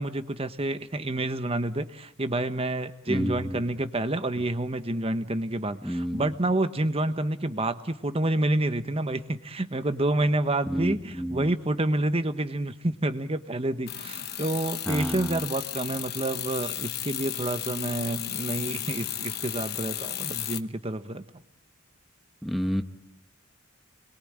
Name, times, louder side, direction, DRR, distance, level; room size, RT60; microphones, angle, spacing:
voice 1, 0.0-21.2, right 1 dB, 30° right, 10 dB, 1.1 m, -28 dB
voice 2, 3.1-3.6 5.8-6.3 10.7-11.5 14.9-15.4 22.4-22.8, equal, ahead, 6 dB, 1.0 m, -30 dB
sound 1, 13.9-20.6, left 11 dB, 50° left, 1.1 m, -34 dB
29.5 x 22.0 x 8.8 m, 0.80 s
head